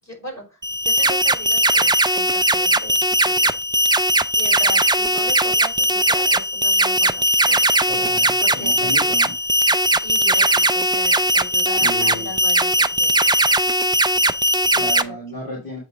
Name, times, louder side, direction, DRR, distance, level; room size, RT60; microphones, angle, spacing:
voice 1, 0.0-3.6 4.3-9.0 10.0-13.9 14.3-15.1, equal, 45° left, 4.6 m, -38 dB
sound 1, 0.6-15.0, right 1 dB, 10° right, 0.3 m, -19 dB
voice 2, 7.9-9.3 11.8-12.3 14.7-15.8, left 1 dB, 65° left, 2.4 m, -33 dB
7.9 x 3.2 x 4.8 m
wide cardioid pair, 60°, 37 cm